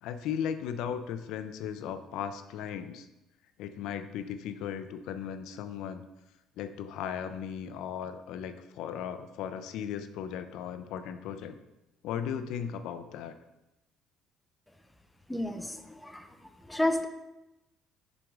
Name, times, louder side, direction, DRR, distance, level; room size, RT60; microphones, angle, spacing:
voice 1, 0.0-3.1 3.6-6.0 6.6-11.5 12.0-13.4, left 8 dB, 70° left, 10 dB, 0.4 m, -36 dB
voice 2, 15.3-16.3 16.7-17.1, left 1 dB, 5° left, 7 dB, 0.4 m, -30 dB
6.1 x 5.1 x 3.5 m, 0.97 s
cardioid pair, 155°, 0 cm